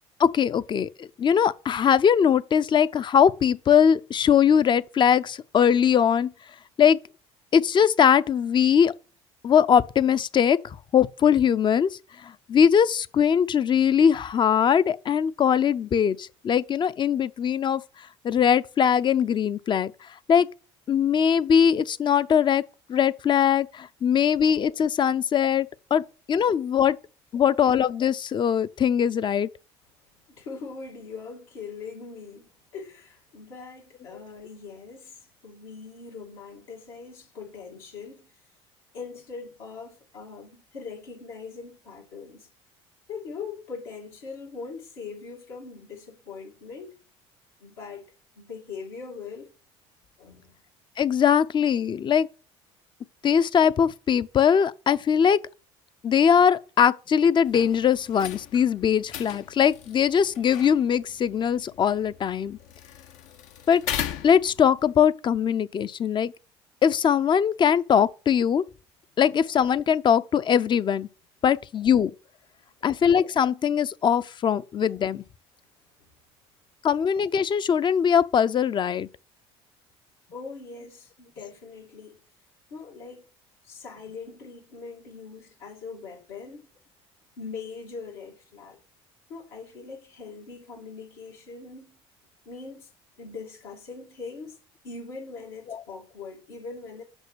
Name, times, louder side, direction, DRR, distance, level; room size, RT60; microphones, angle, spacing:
voice 1, 0.2-6.3 6.8-7.0 7.5-8.9 9.4-10.6 10.9-12.0 12.5-17.8 18.2-19.9 20.3-20.5 20.9-22.6 22.9-26.0 26.3-27.0 27.3-29.5 51.0-52.3 53.2-55.4 56.0-62.6 63.7-63.8 64.2-66.3 66.8-68.6 69.2-71.1 71.4-72.1 72.8-75.2 76.8-79.1, left 8 dB, 35° left, 0.5 m, -21 dB
voice 2, 30.3-38.3 38.9-42.5 43.1-47.0 47.6-48.0 48.4-49.5 50.2-50.6 72.8-72.9 80.3-82.2 82.7-83.3 83.6-86.7 87.4-88.8 89.3-92.0 92.4-92.9 93.2-94.6 94.8-97.0, left 5 dB, 85° left, 2.4 m, -41 dB
sound 1, 57.4-64.9, left 10 dB, 70° left, 0.8 m, -38 dB
5.9 x 5.4 x 6.2 m
hypercardioid pair, 75°, 13 cm